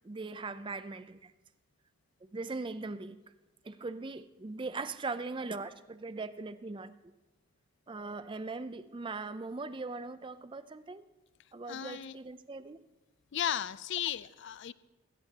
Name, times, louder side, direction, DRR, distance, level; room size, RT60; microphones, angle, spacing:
voice 1, 0.0-1.3 2.3-3.2 3.6-6.9 7.9-11.0 11.5-12.8, right 3 dB, 25° right, 0.4 m, -40 dB
voice 2, 11.7-12.2 13.3-14.7, left 10 dB, 55° left, 0.4 m, -35 dB
19.5 x 16.5 x 2.9 m
head